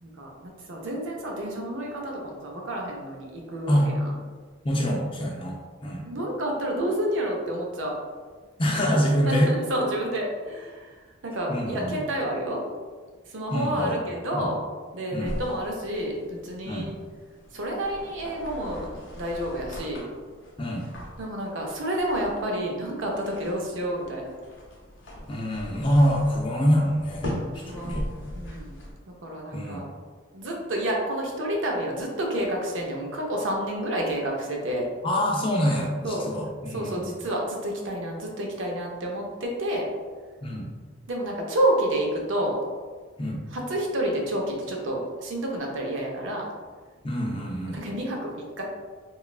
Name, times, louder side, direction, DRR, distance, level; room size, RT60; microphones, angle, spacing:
voice 1, 0.0-4.2 6.0-8.0 9.2-12.6 13.3-14.6 14.9-17.0 17.5-18.9 19.2-20.1 21.2-24.3 27.5-29.9 30.3-34.9 36.0-36.3 36.7-39.9 41.1-42.6 43.5-46.5 47.8-48.6, right 1 dB, 70° right, 0 dB, 0.6 m, -29 dB
voice 2, 4.6-6.0 8.6-9.5 11.5-12.0 13.5-14.0 14.3-14.5 15.1-15.3 16.6-16.9 20.6-20.9 25.3-28.0 29.5-29.8 35.0-37.0 40.4-40.7 43.2-43.4 47.0-47.8, equal, 25° left, -1 dB, 0.4 m, -25 dB
sound 1, 15.2-28.9, equal, 70° left, 0.6 m, -40 dB
3.0 x 2.3 x 2.3 m, 1.5 s
head